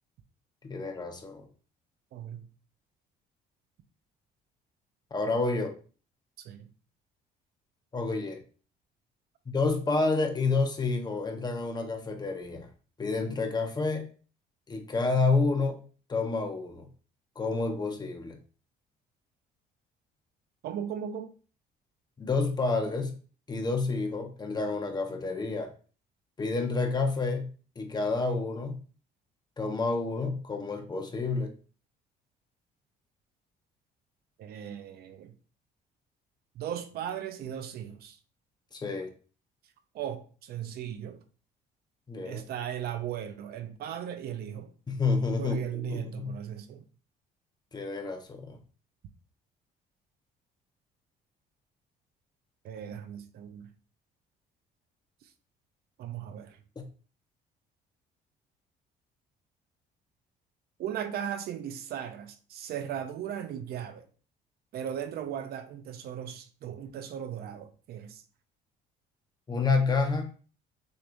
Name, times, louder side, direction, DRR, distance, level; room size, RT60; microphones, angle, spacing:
voice 1, 0.6-1.5 5.1-5.7 7.9-8.4 9.5-12.7 13.0-14.1 14.7-15.8 16.1-16.9 17.4-18.4 22.2-23.1 23.5-25.7 26.4-27.5 27.8-28.8 29.6-31.5 38.7-39.1 42.1-42.4 44.9-46.3 47.7-48.6 56.8-56.9 69.5-70.3, left 3 dB, 25° left, 1.0 m, -29 dB
voice 2, 2.1-2.5 6.4-6.7 20.6-21.3 34.4-35.3 36.6-38.2 39.9-41.2 42.3-44.7 45.4-46.8 52.6-53.7 55.2-55.3 56.0-56.6 60.8-64.1 64.7-68.2, right 9 dB, 65° right, 0.7 m, -37 dB
6.6 x 3.0 x 2.6 m
cardioid pair, 110°, 17 cm